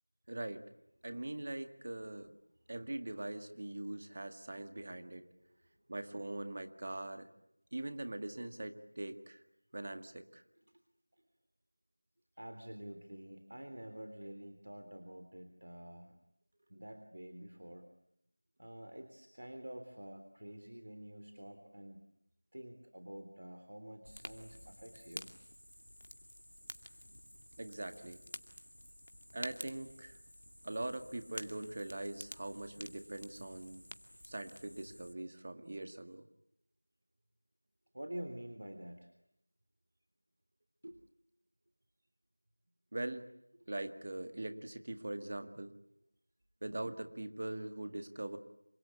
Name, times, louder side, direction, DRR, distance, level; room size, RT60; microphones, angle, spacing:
voice 1, 0.3-0.7 1.0-2.3 2.7-5.3 5.9-7.3 7.7-9.4 9.7-10.4 27.6-28.2 29.3-30.2 30.6-33.9 34.2-36.3 42.9-43.3 43.7-45.8 46.6-48.4, right 1 dB, 30° right, 8 dB, 1.8 m, -42 dB
voice 2, 12.4-16.2 16.7-17.9 18.6-22.0 22.5-25.3 37.9-39.1 40.8-41.0, right 1 dB, 60° right, 7 dB, 3.4 m, -48 dB
Fire, 24.0-35.1, equal, 85° left, 2.3 m, -51 dB
27.5 x 26.0 x 8.4 m, 0.79 s
figure-of-eight pair, 175°, 0 cm